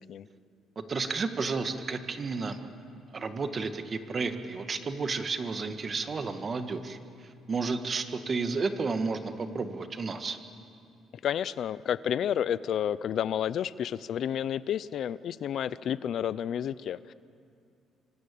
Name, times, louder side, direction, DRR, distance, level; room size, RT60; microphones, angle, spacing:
voice 1, 0.8-2.6 3.1-10.4, right 4 dB, 30° right, 7 dB, 1.8 m, -32 dB
voice 2, 11.2-17.1, left 9 dB, 55° left, 17 dB, 0.5 m, -30 dB
26.0 x 25.5 x 8.5 m, 2.5 s
cardioid pair, 135°, 0 cm